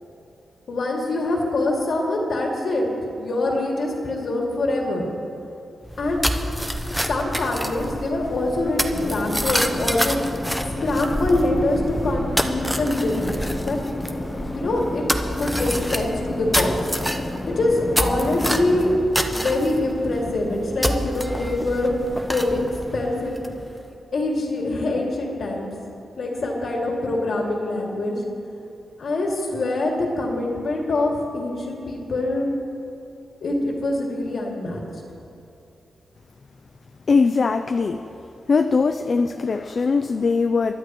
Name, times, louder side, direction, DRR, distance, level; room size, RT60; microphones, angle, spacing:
voice 1, 0.7-2.9 3.2-5.1 6.0-6.2 7.1-10.2 10.8-13.3 13.7-13.8 14.5-15.0 15.4-16.8 17.5-18.9 19.3-21.9 22.3-23.6 24.1-25.7 26.2-28.2 29.0-32.5 33.4-34.8, left 2 dB, 60° left, -1 dB, 2.3 m, -24 dB
sound 1, 5.9-23.8, equal, ahead, 0.8 m, -28 dB
sound 2, 8.9-19.0, left 2 dB, 30° left, 1.2 m, -32 dB
voice 2, 37.1-38.0 38.5-40.7, left 4 dB, 45° left, 7 dB, 0.4 m, -20 dB
23.0 x 12.0 x 3.1 m, 2.7 s
wide cardioid pair, 115°, 0 cm